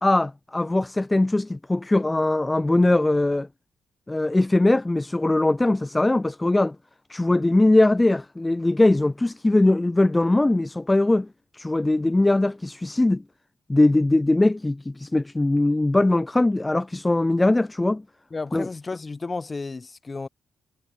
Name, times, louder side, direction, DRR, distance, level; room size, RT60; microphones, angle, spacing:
voice 1, 0.0-3.5 4.1-6.8 7.1-11.3 11.5-13.2 13.7-18.0 18.5-18.7, left 2 dB, 20° left, 1.0 m, -21 dB
voice 2, 18.3-20.3, left 3 dB, 35° left, 3.2 m, -32 dB
supercardioid pair, 55°, 0 cm